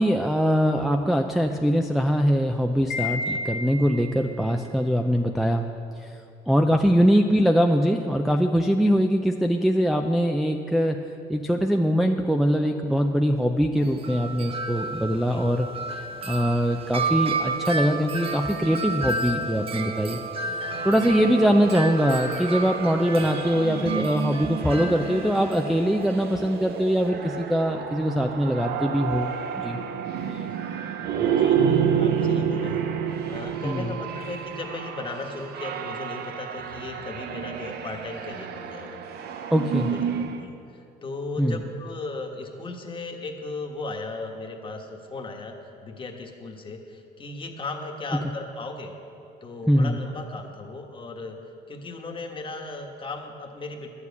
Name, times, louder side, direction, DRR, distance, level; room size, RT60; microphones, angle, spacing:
voice 1, 0.0-5.7 6.0-6.1 6.5-11.0 11.3-15.7 16.3-20.2 20.5-20.6 20.8-29.8 33.6-33.9 39.5-39.9 41.4-41.6 49.7-50.0, equal, ahead, 2 dB, 0.5 m, -22 dB
Wind chime, 2.9-4.3, left 3 dB, 85° left, 1.7 m, -31 dB
Wind chime 2, 13.8-27.1, right 3 dB, 35° right, 0.8 m, -32 dB
voice 2, 20.4-20.7 21.2-21.3 30.2-30.6 31.1-39.0 39.4-40.0 40.3-45.6 45.8-48.9 49.4-51.4 51.7-53.9, left 3 dB, 30° left, 3 dB, 1.4 m, -37 dB
sound 1, 20.6-40.5, right 8 dB, 70° right, 0.8 m, -30 dB
11.0 x 7.2 x 8.3 m, 2.6 s
cardioid pair, 110°, 17 cm